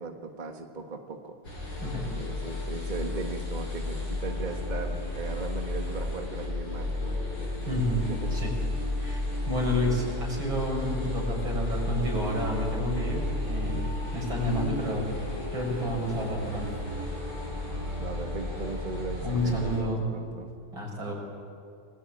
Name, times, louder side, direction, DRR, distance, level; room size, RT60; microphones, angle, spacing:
voice 1, 0.0-1.4 2.1-7.7 8.1-8.3 17.9-20.5, right 3 dB, 25° right, 4 dB, 1.6 m, -38 dB
sound 1, 1.4-19.8, left 2 dB, 75° left, 7.5 m, -33 dB
voice 2, 7.7-8.5 9.0-13.8 14.1-15.1 15.5-16.8 19.2-20.0 20.7-21.1, equal, 75° right, -1 dB, 7.5 m, -30 dB
29.5 x 21.5 x 8.9 m, 2.4 s
omnidirectional pair, 2.2 m